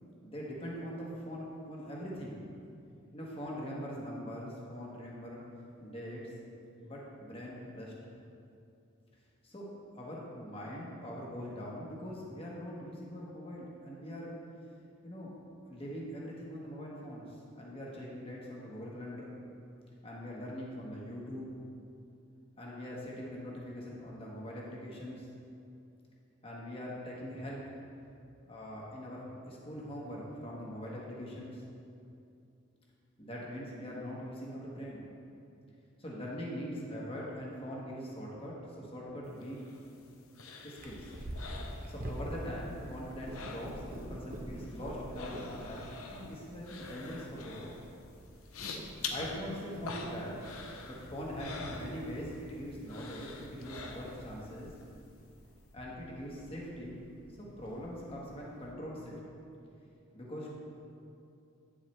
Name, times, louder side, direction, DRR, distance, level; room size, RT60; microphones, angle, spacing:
voice 1, 0.2-2.4 3.1-5.4 5.8-6.3 6.8-7.9 9.4-9.6 9.9-14.3 15.0-15.3 15.7-19.4 20.0-21.5 22.6-25.3 26.4-27.6 28.5-31.6 33.2-35.0 36.0-39.6 40.6-41.1 41.9-47.7 49.1-50.4 50.9-54.7 55.7-57.0 57.4-59.1 60.1-60.5, equal, 25° left, -4 dB, 1.3 m, -42 dB
sound 1, 39.4-42.5 42.7-44.1 44.3-52.5 52.9-54.4 54.8-54.9, left 4 dB, 80° left, 0.8 m, -45 dB
Purr, 40.8-58.7, equal, 40° right, 0.8 m, -47 dB
9.5 x 7.3 x 3.2 m, 2.6 s
head